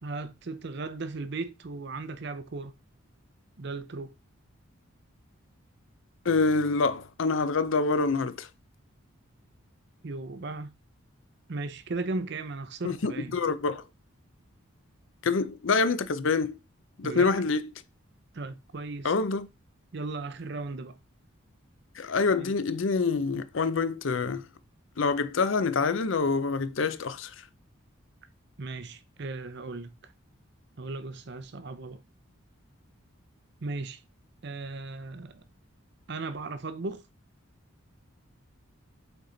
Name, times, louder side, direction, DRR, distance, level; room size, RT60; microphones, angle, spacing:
voice 1, 0.0-2.7 3.6-4.1 10.0-10.7 11.5-13.4 17.0-17.3 18.3-19.1 19.9-21.0 22.3-22.5 28.6-29.9 30.8-32.0 33.6-34.0 34.4-35.4 36.1-37.0, right 3 dB, 50° right, 0.6 m, -36 dB
voice 2, 6.3-8.5 12.8-13.8 15.2-16.6 17.0-17.6 19.0-19.5 22.0-24.4 25.0-27.3, left 4 dB, 65° left, 0.6 m, -26 dB
8.0 x 4.2 x 3.9 m
head